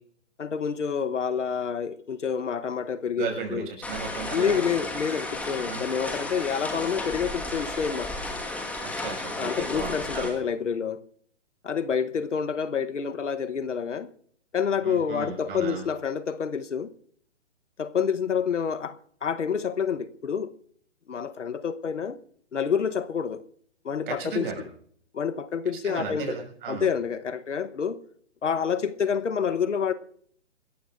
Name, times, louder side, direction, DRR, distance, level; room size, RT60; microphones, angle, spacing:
voice 1, 0.4-3.7 4.3-8.2 9.4-11.0 11.6-14.1 14.5-16.9 17.8-20.5 21.1-22.2 22.5-23.4 23.8-24.5 25.1-26.3 26.7-28.0 28.4-29.9, left 7 dB, 80° left, 1.1 m, -28 dB
voice 2, 3.2-4.6 5.7-5.8 8.8-10.3 14.8-15.8 24.1-24.6 25.8-26.9, right 5 dB, 45° right, 6.4 m, -35 dB
sound 1, 3.8-10.3, left 2 dB, 5° left, 1.6 m, -33 dB
27.0 x 14.0 x 2.6 m
figure-of-eight pair, 135°, 36 cm